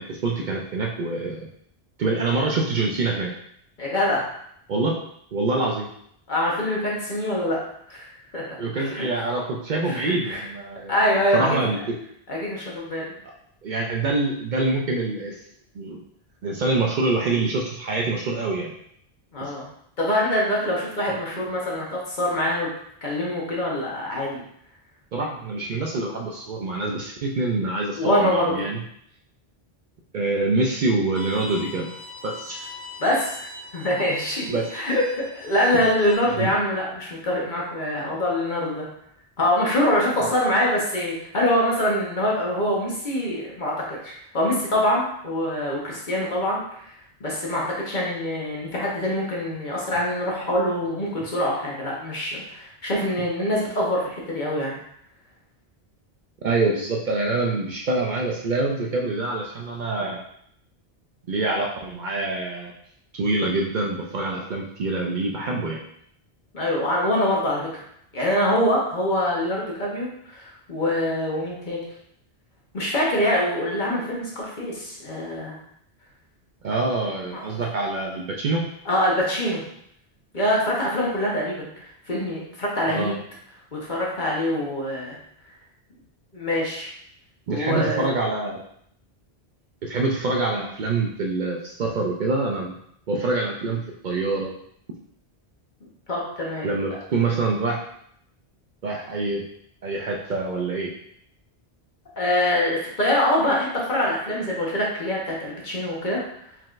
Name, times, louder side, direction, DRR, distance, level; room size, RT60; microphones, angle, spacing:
voice 1, 0.0-1.5 2.0-3.3 4.7-5.0 5.3-5.9 8.6-12.0 13.6-15.4 15.7-16.0 16.4-18.7 19.4-19.5 25.1-28.8 30.1-31.9 32.2-32.7 34.5-34.7 36.4-36.5 40.2-40.3 56.4-60.2 61.3-62.7 63.1-65.8 76.6-78.6 82.9-83.2 87.5-88.6 89.8-92.8 93.1-94.5 96.6-97.8 98.8-99.4 99.8-100.9, right 3 dB, 55° right, 0 dB, 0.6 m, -25 dB
voice 2, 3.8-4.2 6.3-7.6 7.9-8.4 8.8-9.1 9.8-10.4 10.9-11.6 12.3-13.1 19.3-19.7 20.0-22.7 23.0-24.4 28.0-28.7 33.0-33.4 33.7-34.5 34.7-38.9 39.4-46.9 47.2-54.8 66.5-67.8 68.1-71.8 72.7-75.6 77.3-77.6 78.8-79.6 80.3-83.1 83.7-85.2 86.3-86.9 87.5-88.1 96.1-97.0 102.2-106.2, left 1 dB, 50° left, -4 dB, 1.2 m, -24 dB
Bowed string instrument, 31.2-36.2, left 2 dB, 20° left, 1.0 m, -41 dB
4.5 x 3.8 x 2.5 m, 0.71 s
omnidirectional pair, 1.1 m